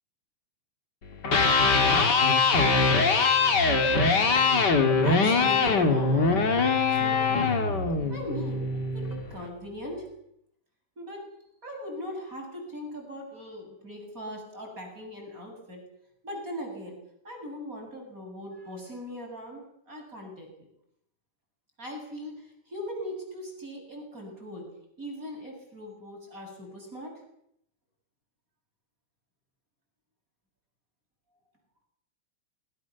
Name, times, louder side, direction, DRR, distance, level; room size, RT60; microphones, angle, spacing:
Electric guitar, 1.1-9.2, left 4 dB, 35° left, 2.7 m, -22 dB
voice 1, 3.8-4.4 5.0-6.5 6.9-7.5 8.1-8.6 8.9-10.1 11.0-11.2 11.6-15.8 16.2-17.0 17.2-20.5 21.8-24.6 25.0-27.1, equal, 25° right, 1 dB, 8.1 m, -39 dB
28.0 x 22.0 x 7.1 m, 0.75 s
omnidirectional pair, 3.4 m